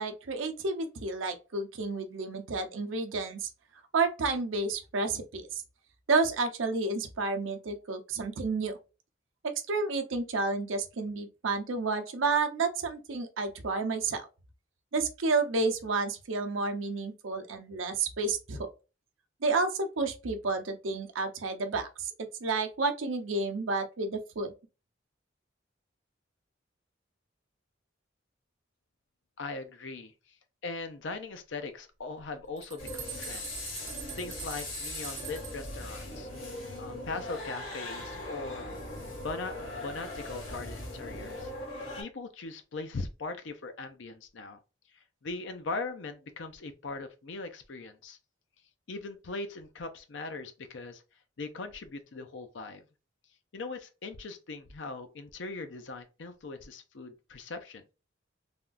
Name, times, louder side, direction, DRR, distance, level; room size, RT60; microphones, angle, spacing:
voice 1, 0.0-3.5 3.9-5.6 6.1-8.7 9.7-14.3 14.9-18.7 19.4-24.5, right 3 dB, 90° right, 0.6 m, -30 dB
voice 2, 29.4-30.1 30.6-36.3 36.8-38.7 39.1-41.5 42.0-44.6 45.2-48.2 48.9-51.0 51.4-52.8 53.5-57.8, left 3 dB, 65° left, 0.5 m, -40 dB
sound 1, 32.2-35.7, right 9 dB, 40° right, 0.7 m, -44 dB
sound 2, 32.8-42.0, left 1 dB, 85° left, 1.8 m, -40 dB
3.4 x 2.3 x 2.5 m
head